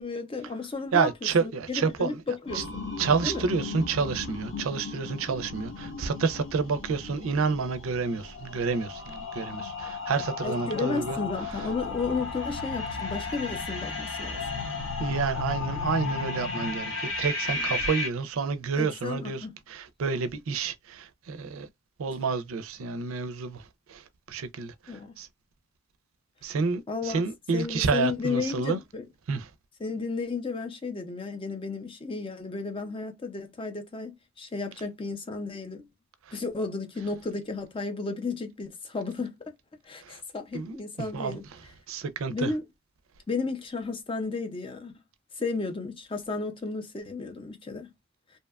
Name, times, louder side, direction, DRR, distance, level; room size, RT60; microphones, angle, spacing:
voice 1, 0.0-2.8 3.2-3.5 10.4-14.4 17.6-17.7 18.8-19.5 24.9-25.1 26.9-27.2 27.5-29.1 29.8-35.9 36.3-39.6 39.8-41.5 42.3-42.6 43.3-44.9 45.4-47.9, left 4 dB, 25° left, 0.4 m, -33 dB
voice 2, 0.9-2.2 2.5-2.6 3.0-11.2 15.0-21.7 22.0-25.3 26.4-28.8 29.3-29.5 40.0-40.2 40.5-40.8 41.1-41.4 41.9-42.5, right 5 dB, 80° right, 0.4 m, -29 dB
sound 1, 2.5-18.1, left 3 dB, 65° left, 0.8 m, -35 dB
2.7 x 2.2 x 2.2 m
head